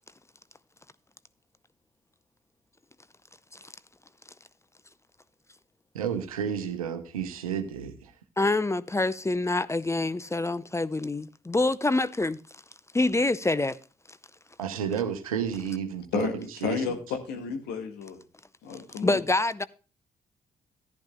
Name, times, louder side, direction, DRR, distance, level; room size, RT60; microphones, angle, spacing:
voice 1, 5.9-8.1 14.6-16.8, right 8 dB, 85° right, 0.9 m, -31 dB
voice 2, 8.4-12.4 12.9-13.8 19.0-19.7, left 2 dB, 15° left, 0.6 m, -26 dB
voice 3, 16.6-17.0 17.3-18.2 18.6-19.2, left 6 dB, 70° left, 1.7 m, -31 dB
14.5 x 10.0 x 2.3 m
figure-of-eight pair, 40°, 18 cm